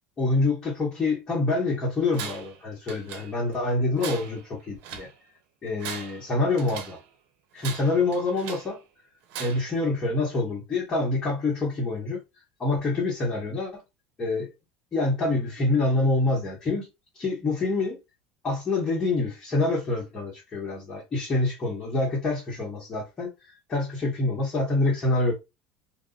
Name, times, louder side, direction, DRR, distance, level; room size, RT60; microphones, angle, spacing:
voice 1, 0.2-5.1 5.6-7.0 7.5-8.8 9.4-12.2 12.6-13.7 14.2-14.5 14.9-16.9 17.1-18.0 18.4-23.3 23.7-25.3, left 2 dB, 25° left, 1.5 m, -26 dB
Tools, 2.1-2.6 2.9-3.6 4.0-5.1 5.7-7.0 7.6-8.8 9.3-9.8, right 8 dB, 65° right, 0.8 m, -39 dB
2.7 x 2.6 x 3.9 m
supercardioid pair, 130°, 3 cm